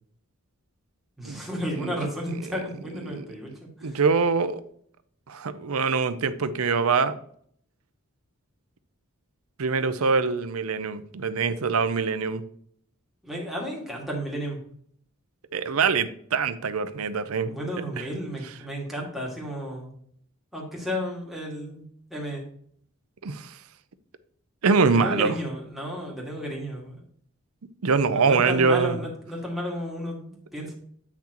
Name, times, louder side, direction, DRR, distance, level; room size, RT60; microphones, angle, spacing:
voice 1, 1.2-4.0 13.2-14.6 17.4-19.9 20.5-22.4 24.9-27.0 28.1-30.8, equal, ahead, -3 dB, 2.1 m, -33 dB
voice 2, 3.8-4.6 5.3-7.1 9.6-12.4 15.5-17.5 18.0-18.1 23.2-23.6 24.6-25.3 27.8-29.0, right 4 dB, 80° right, 13 dB, 0.6 m, -24 dB
8.6 x 5.9 x 3.0 m, 0.62 s
head